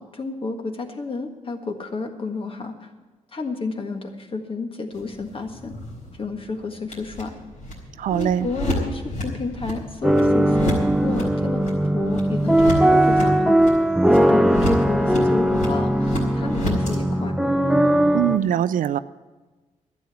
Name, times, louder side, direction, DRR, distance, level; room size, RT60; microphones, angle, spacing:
voice 1, 0.0-2.9 3.3-5.7 6.1-7.4 8.1-17.4, left 3 dB, 40° left, 4 dB, 1.7 m, -31 dB
sound 1, 4.9-17.0, equal, 70° left, 4.0 m, -32 dB
voice 2, 8.0-8.5 18.1-19.0, right 10 dB, 70° right, 15 dB, 0.4 m, -22 dB
sound 2, 10.0-18.4, right 1 dB, 5° right, 0.7 m, -19 dB
11.5 x 8.3 x 8.4 m, 1.3 s
cardioid pair, 65°, 14 cm